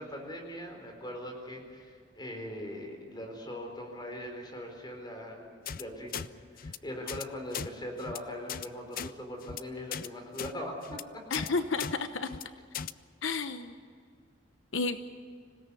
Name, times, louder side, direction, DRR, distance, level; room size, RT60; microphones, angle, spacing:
voice 1, 0.0-6.3 6.5-11.2, left 1 dB, 20° left, 3 dB, 4.3 m, -41 dB
sound 1, 5.7-5.8 6.1-6.3 6.6-6.8 7.1-7.2 7.5-7.7 8.0-8.2 8.5-8.7 8.9-9.1 9.4-9.6 9.9-10.1 10.4-10.5 10.8-11.0 11.3-11.5 11.8-11.9 12.2-12.4 12.7-12.9, left 7 dB, 50° left, 0.6 m, -37 dB
voice 2, 11.3-12.3 13.2-13.8 14.7-15.0, left 4 dB, 85° left, 9 dB, 0.9 m, -31 dB
26.0 x 17.5 x 8.4 m, 2.1 s
head